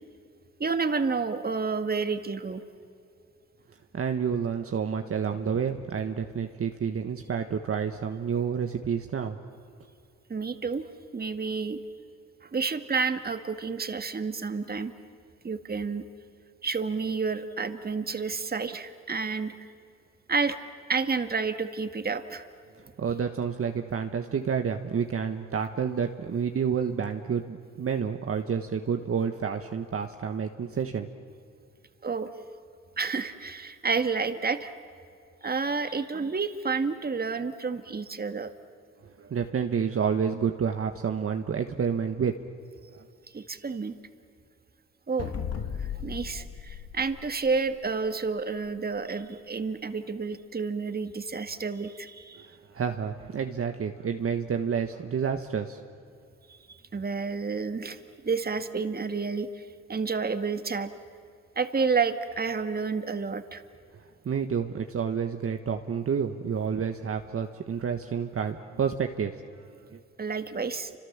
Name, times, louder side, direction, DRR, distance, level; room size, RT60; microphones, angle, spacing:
voice 1, 0.6-2.6 10.3-10.8 11.1-11.8 12.4-14.9 15.4-16.1 16.6-19.7 20.3-20.6 20.9-22.5 32.0-32.3 33.0-34.7 35.4-38.5 43.3-44.0 45.1-45.3 45.8-52.5 56.5-56.6 56.9-60.9 61.6-63.6 70.2-71.0, right 4 dB, 30° right, 9 dB, 1.8 m, -30 dB
voice 2, 3.9-9.4 23.0-31.1 39.0-42.4 42.9-43.0 52.4-55.8 64.2-70.0, right 7 dB, 50° right, 5 dB, 1.4 m, -29 dB
sound 1, 45.2-47.9, left 7 dB, 55° left, 1.6 m, -36 dB
29.5 x 26.5 x 7.4 m, 2.4 s
cardioid pair, 70°, 30 cm